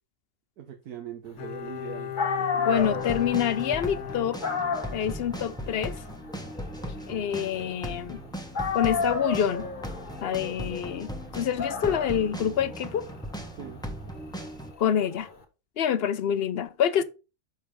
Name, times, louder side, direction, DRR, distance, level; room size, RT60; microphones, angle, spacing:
voice 1, 0.6-2.1 2.4-2.5 13.5-13.8, right 9 dB, 75° right, 1.5 m, -41 dB
Bowed string instrument, 1.4-5.1 5.4-5.5, left 11 dB, 75° left, 1.4 m, -37 dB
Dog, 1.9-2.0 2.2-8.2 8.5-15.3, left 4 dB, 35° left, 1.4 m, -33 dB
voice 2, 2.6-4.4 4.9-6.0 7.1-8.2 8.7-9.7 10.2-13.1 14.8-15.3 15.8-17.0, left 9 dB, 60° left, 0.6 m, -26 dB
sound 1, 2.8-14.7, equal, 5° left, 1.2 m, -38 dB
6.4 x 5.4 x 5.2 m
omnidirectional pair, 1.6 m